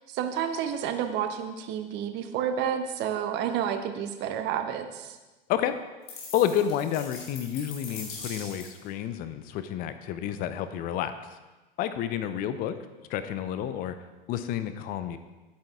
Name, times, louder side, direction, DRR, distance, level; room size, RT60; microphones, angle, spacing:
voice 1, 0.0-5.2, right 9 dB, 35° right, 8 dB, 0.9 m, -30 dB
sound 1, 6.1-8.9, left 4 dB, 50° left, 3.0 m, -41 dB
voice 2, 6.3-11.4 11.8-12.8 13.1-14.0 14.3-15.2, left 10 dB, 30° left, 11 dB, 0.6 m, -30 dB
10.5 x 8.8 x 3.5 m, 1.2 s
figure-of-eight pair, 90°, 30 cm